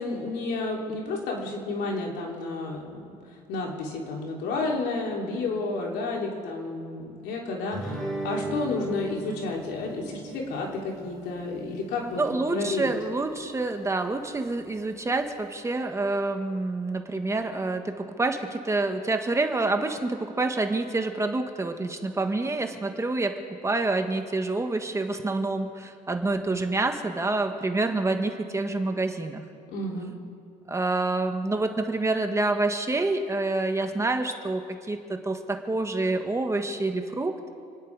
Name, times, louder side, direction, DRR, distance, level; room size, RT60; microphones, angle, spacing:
voice 1, 0.0-3.1 3.5-12.9 29.7-30.1, left 3 dB, 85° left, -1 dB, 3.4 m, -31 dB
Guitar, 7.7-12.8, right 2 dB, 5° left, 4.0 m, -37 dB
voice 2, 12.2-29.4 30.7-37.5, right 2 dB, 15° right, 5 dB, 1.3 m, -27 dB
28.5 x 10.0 x 4.8 m, 2.4 s
cardioid pair, 110°, 17 cm